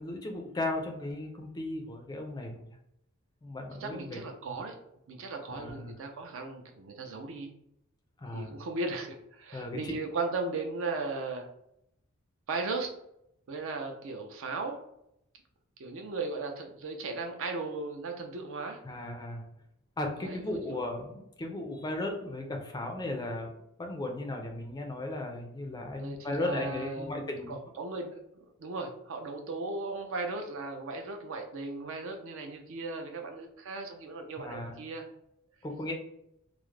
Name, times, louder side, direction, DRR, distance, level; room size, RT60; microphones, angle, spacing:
voice 1, 0.0-2.7 3.4-4.2 4.5-4.6 5.5-5.9 8.2-8.5 9.5-10.0 18.8-19.4 20.0-23.5 23.8-27.6 34.4-34.8 35.6-35.9, left 2 dB, 20° left, 2 dB, 0.4 m, -36 dB
voice 2, 3.8-4.8 5.1-7.5 8.3-11.5 12.5-12.9 13.5-14.8 15.8-18.8 20.2-20.8 26.0-35.1, right 3 dB, 65° right, 4 dB, 0.5 m, -37 dB
2.3 x 2.0 x 3.1 m, 0.78 s
head